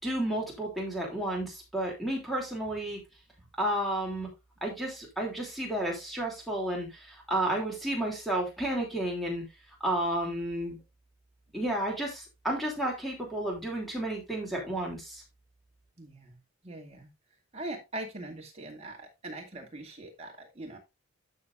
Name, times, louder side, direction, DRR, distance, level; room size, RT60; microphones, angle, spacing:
voice 1, 0.0-3.0 3.6-4.3 4.6-9.4 9.8-10.8 11.5-15.2, right 1 dB, ahead, -1 dB, 2.9 m, -32 dB
voice 2, 16.0-16.4 16.6-17.1 17.5-20.8, right 1 dB, 30° right, 0 dB, 2.2 m, -41 dB
12.5 x 6.3 x 2.5 m, 0.23 s
head